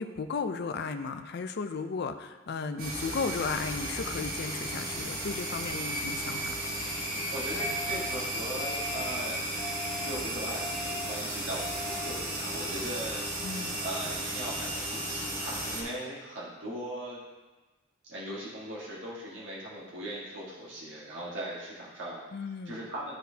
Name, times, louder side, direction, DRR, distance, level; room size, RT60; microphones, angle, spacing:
voice 1, 0.0-6.6 13.4-13.8 22.3-22.8, left 5 dB, 55° left, 8 dB, 0.4 m, -35 dB
sound 1, 2.8-15.8, right 1 dB, 50° right, 1.5 m, -34 dB
voice 2, 7.3-9.6 10.0-17.2 18.1-22.2 22.6-23.2, right 1 dB, 75° right, -6 dB, 1.5 m, -39 dB
sound 2, 7.6-8.1 8.6-9.1 9.6-10.1 10.6-11.1 11.6-12.1, left 2 dB, 25° left, 1.3 m, -40 dB
11.5 x 4.1 x 2.8 m, 1.2 s
head